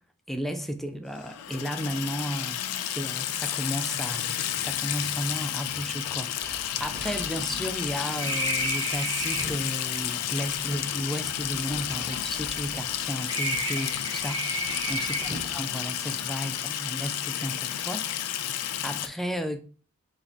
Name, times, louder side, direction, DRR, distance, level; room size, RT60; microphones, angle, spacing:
voice 1, 0.3-14.5 14.9-19.6, equal, ahead, 0.4 m, -34 dB
Water tap faucet / Sink (filling or washing), 1.2-19.1, left 11 dB, 90° left, 0.4 m, -31 dB
sound 1, 5.9-6.0 6.4-9.7 10.5-12.9 13.3-15.6, right 1 dB, 20° right, 0.8 m, -34 dB
4.3 x 2.5 x 3.8 m
head